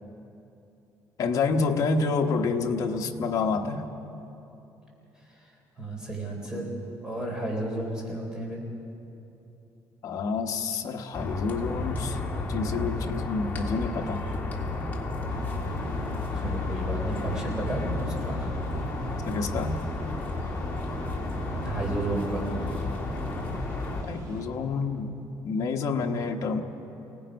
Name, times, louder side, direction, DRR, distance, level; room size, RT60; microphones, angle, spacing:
voice 1, 1.2-3.9 10.0-12.2 12.5-14.2 19.2-19.8 24.0-25.1 25.4-26.6, left 4 dB, 45° left, 2 dB, 1.2 m, -28 dB
voice 2, 5.8-6.6 7.0-8.6 16.4-18.5 21.6-22.6, right 2 dB, 10° right, -1 dB, 3.8 m, -32 dB
sound 1, 11.1-24.0, left 2 dB, 25° left, 2.2 m, -32 dB
sound 2, 15.3-24.4, right 1 dB, 55° right, 6.1 m, -43 dB
29.5 x 18.0 x 5.3 m, 2.9 s
cardioid pair, 160°, 7 cm